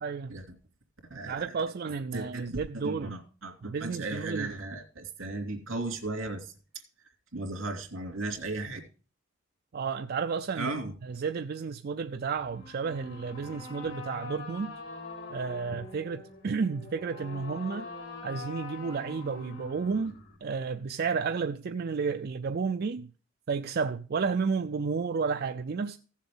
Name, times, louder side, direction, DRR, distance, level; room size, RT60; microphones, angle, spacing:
voice 1, 0.0-0.4 1.1-3.1 3.6-4.5 9.7-10.7 11.0-14.7 15.3-17.9 18.2-23.1 23.5-26.0, right 5 dB, 50° right, 0.4 m, -32 dB
voice 2, 1.1-1.5 2.1-6.5 7.3-8.8 10.6-10.9, right 2 dB, 80° right, 2.7 m, -36 dB
sound 1, 12.4-20.4, left 3 dB, 75° left, 4.2 m, -43 dB
16.0 x 7.3 x 3.7 m
head